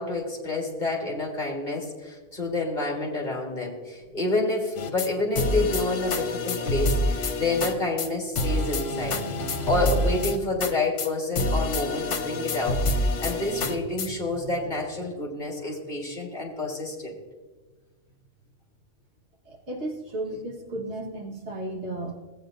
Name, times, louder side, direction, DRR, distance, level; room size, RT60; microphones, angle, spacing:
voice 1, 0.0-9.2 9.7-17.1, left 2 dB, 40° left, -1 dB, 1.7 m, -28 dB
sound 1, 4.7-5.1 5.3-7.7 8.0-8.1 8.3-10.7 11.0-11.1 11.3-14.1, left 2 dB, 85° left, 1.1 m, -27 dB
voice 2, 8.5-10.3 13.6-13.8 14.0-14.5 19.5-22.1, right 1 dB, 70° right, -2 dB, 1.7 m, -35 dB
16.5 x 8.3 x 2.6 m, 1.3 s
omnidirectional pair, 1.2 m